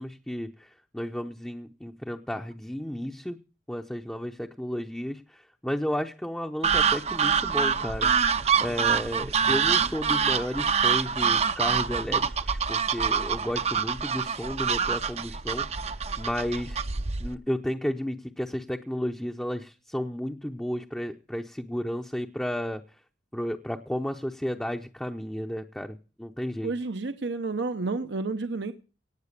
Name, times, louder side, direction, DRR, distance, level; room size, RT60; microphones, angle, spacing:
voice 1, 0.0-3.4 3.7-8.1 8.6-15.7 16.2-16.8 17.2-22.8 23.3-26.7, equal, 5° left, 0.7 m, -33 dB
sound 1, 6.6-17.4, right 6 dB, 35° right, 0.6 m, -26 dB
voice 2, 26.6-28.7, right 3 dB, 70° right, 0.8 m, -30 dB
18.0 x 7.9 x 6.6 m
head